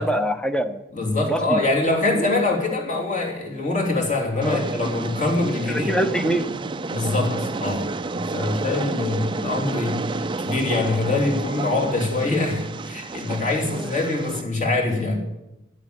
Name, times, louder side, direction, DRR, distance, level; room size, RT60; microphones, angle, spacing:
voice 1, 0.0-0.8 1.3-1.6 4.4-4.6 5.7-6.5 7.3-7.5 13.8-13.9, equal, 5° left, 9 dB, 0.8 m, -24 dB
voice 2, 0.9-5.9 6.9-15.2, left 2 dB, 35° left, -1 dB, 3.2 m, -24 dB
Train, 4.4-14.4, right 3 dB, 25° right, 0.4 m, -30 dB
11.0 x 11.0 x 8.9 m, 0.96 s
head